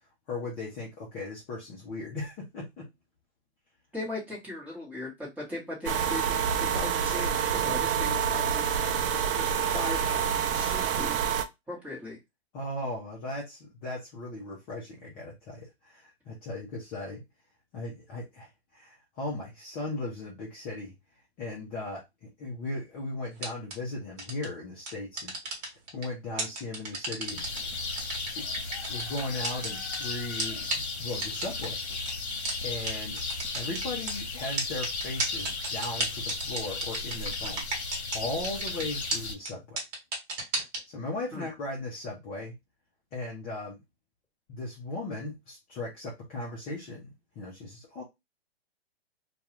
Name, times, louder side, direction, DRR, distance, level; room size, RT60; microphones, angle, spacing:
voice 1, 0.3-2.9 12.5-17.2 17.7-20.9 21.4-25.3 25.9-27.5 28.4-28.5 28.9-31.8 32.6-33.2 33.5-37.6 38.1-39.8 40.9-42.5 43.1-43.8 44.5-47.1 47.4-48.0, left 2 dB, 20° left, 0.5 m, -37 dB
voice 2, 3.9-11.2 11.7-12.2 41.3-41.4, left 2 dB, 5° right, 1.0 m, -39 dB
sound 1, 5.9-11.5, right 7 dB, 55° right, 0.5 m, -27 dB
sound 2, 23.4-23.7 24.2-24.5 24.9-26.0 26.4-27.6 28.0-30.0 30.4-30.5 30.7-30.8 31.2-31.7 32.1-32.2 32.5-32.6 32.9-33.0 33.2-34.1 34.6-38.2 38.4-38.8 39.1-39.2 39.5-39.6 39.8-40.8, right 2 dB, 35° right, 1.1 m, -31 dB
sound 3, 27.3-39.3, left 3 dB, 80° left, 0.8 m, -35 dB
2.3 x 2.3 x 3.0 m
hypercardioid pair, 130°, 33 cm